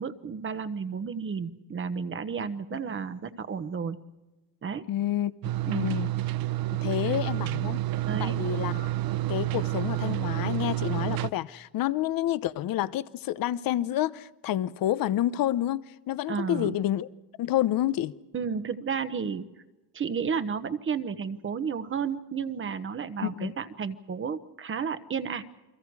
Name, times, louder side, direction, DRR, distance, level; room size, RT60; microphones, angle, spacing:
voice 1, 0.0-4.0 4.6-4.8 5.7-5.9 7.0-7.1 8.0-8.4 16.3-16.8 18.3-19.5 19.9-25.4, right 6 dB, 30° right, 1.1 m, -32 dB
voice 2, 4.9-6.1 6.7-7.8 8.2-8.9 9.3-17.1 17.4-18.1 23.2-23.5, left 13 dB, 60° left, 0.9 m, -29 dB
sound 1, 5.4-11.3, right 15 dB, 65° right, 0.8 m, -29 dB
29.5 x 24.0 x 4.8 m
cardioid pair, 150°, 38 cm